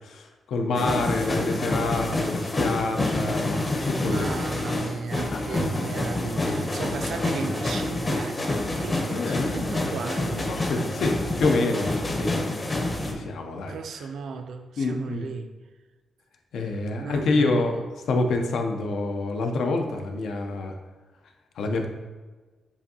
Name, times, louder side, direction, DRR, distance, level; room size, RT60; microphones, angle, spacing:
voice 1, 0.0-4.3 5.3-5.6 9.1-9.8 10.5-12.3 13.0-13.7 14.8-15.3 16.5-17.8 18.1-20.8 21.6-21.9, left 3 dB, 85° left, 0.5 m, -27 dB
sound 1, 0.7-13.1, left 2 dB, 30° left, 0.6 m, -27 dB
voice 2, 0.8-1.6 4.0-10.6 13.6-15.6 17.0-17.9, right 5 dB, 75° right, 0.3 m, -36 dB
7.0 x 2.6 x 2.7 m
cardioid pair, 120°, 0 cm